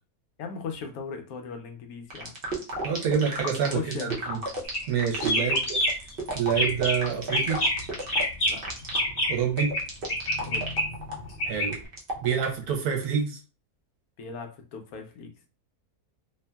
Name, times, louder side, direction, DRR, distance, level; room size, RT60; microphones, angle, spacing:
voice 1, 0.4-2.4 3.6-4.3 5.4-5.7 8.4-8.6 10.5-10.6 14.2-15.5, left 5 dB, 75° left, 4 dB, 1.0 m, -38 dB
sound 1, 2.1-12.7, right 1 dB, 50° right, 0.6 m, -34 dB
voice 2, 2.8-4.4 4.9-5.8 6.3-7.6 9.3-9.7 11.4-11.8 12.2-13.4, right 7 dB, 75° right, 1 dB, 1.2 m, -27 dB
sound 2, 4.6-4.9 5.2-6.1 6.5-7.0 7.3-9.8 10.1-11.7, left 1 dB, 55° left, 1.1 m, -27 dB
2.8 x 2.6 x 2.2 m, 0.33 s
omnidirectional pair, 1.6 m